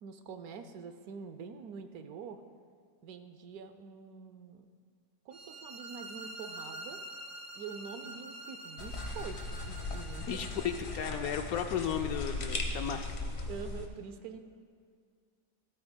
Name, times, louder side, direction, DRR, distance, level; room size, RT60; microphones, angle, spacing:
voice 1, 0.0-2.4 3.0-4.7 5.2-7.0 7.6-10.5 13.5-14.4, right 6 dB, 70° right, 8 dB, 1.0 m, -45 dB
sound 1, 5.3-11.2, right 1 dB, 45° right, 0.7 m, -46 dB
sound 2, 8.8-13.9, left 2 dB, 45° left, 1.2 m, -38 dB
voice 2, 10.2-13.0, left 8 dB, 70° left, 6 dB, 1.0 m, -34 dB
15.5 x 13.5 x 2.2 m, 2.1 s
omnidirectional pair, 1.8 m